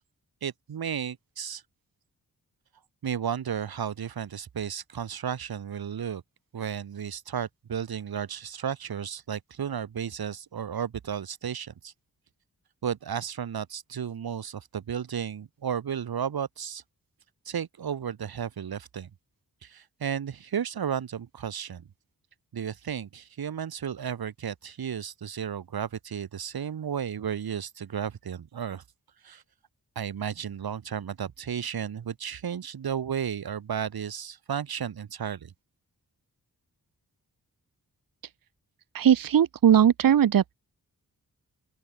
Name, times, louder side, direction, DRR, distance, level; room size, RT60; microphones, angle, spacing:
voice 1, 0.4-1.6 3.0-6.2 6.5-11.9 12.8-16.8 17.4-19.1 19.6-21.8 22.5-28.8 29.2-29.4 29.9-35.5, right 8 dB, 85° right, 1.3 m, -33 dB
voice 2, 38.9-40.5, right 9 dB, 65° right, 0.7 m, -19 dB
open air
wide cardioid pair, 130°, 36 cm